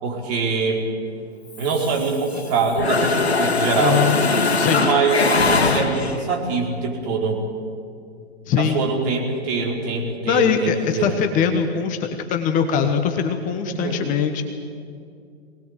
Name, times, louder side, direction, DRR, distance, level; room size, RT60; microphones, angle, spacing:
voice 1, 0.0-0.9 1.6-4.0 4.8-7.4 8.6-11.2 13.6-14.0, right 4 dB, 40° right, 0 dB, 4.7 m, -23 dB
Mechanisms, 1.5-2.5 2.8-6.3, left 4 dB, 75° left, 2.1 m, -21 dB
voice 2, 3.8-4.2 4.5-4.9 8.5-8.8 10.3-14.4, left 7 dB, 25° left, 6 dB, 1.3 m, -22 dB
23.5 x 19.5 x 8.2 m, 2.4 s
figure-of-eight pair, 115°, 32 cm